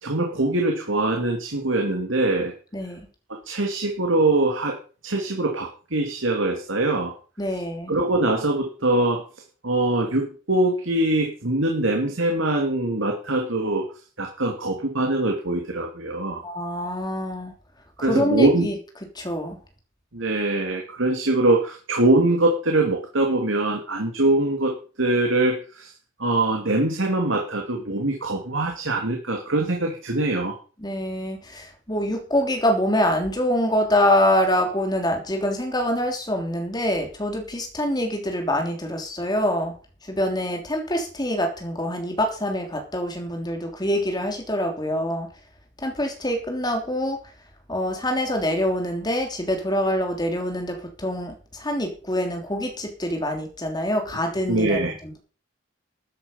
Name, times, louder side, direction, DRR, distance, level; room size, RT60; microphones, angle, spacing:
voice 1, 0.0-2.5 3.4-4.8 5.0-7.2 7.9-9.2 9.6-13.9 14.2-16.4 18.0-18.7 20.1-25.9 26.2-30.6 54.5-54.9, right 2 dB, 75° right, 2 dB, 2.5 m, -23 dB
voice 2, 2.7-3.1 7.4-7.9 16.4-17.5 18.0-18.7 19.1-19.6 30.8-39.7 40.1-45.3 45.8-47.2 47.7-55.2, left 1 dB, 20° left, 3 dB, 3.4 m, -25 dB
13.0 x 10.0 x 5.6 m, 0.38 s
head